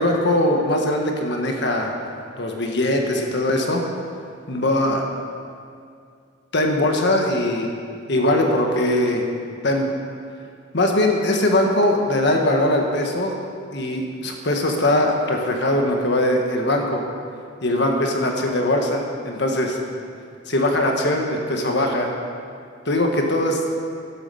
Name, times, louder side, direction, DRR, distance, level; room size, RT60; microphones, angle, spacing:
voice 1, 0.0-1.9 2.4-3.8 4.5-5.0 6.5-7.7 8.1-9.2 9.6-9.9 10.7-13.3 13.7-17.0 17.6-19.8 20.5-22.1 22.8-23.6, left 1 dB, 60° left, 2 dB, 1.6 m, -21 dB
11.5 x 10.0 x 7.0 m, 2.4 s
head